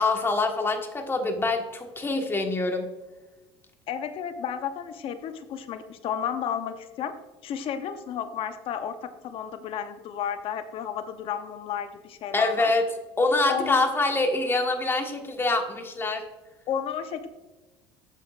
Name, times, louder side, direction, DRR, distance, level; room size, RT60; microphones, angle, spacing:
voice 1, 0.0-2.9 12.3-12.8 13.2-16.2, left 3 dB, 20° left, 3 dB, 1.5 m, -25 dB
voice 2, 3.9-7.1 7.4-12.7 13.5-13.9 16.7-17.3, left 8 dB, 55° left, 9 dB, 0.9 m, -32 dB
11.0 x 7.2 x 2.5 m, 1.1 s
supercardioid pair, 90°, 11 cm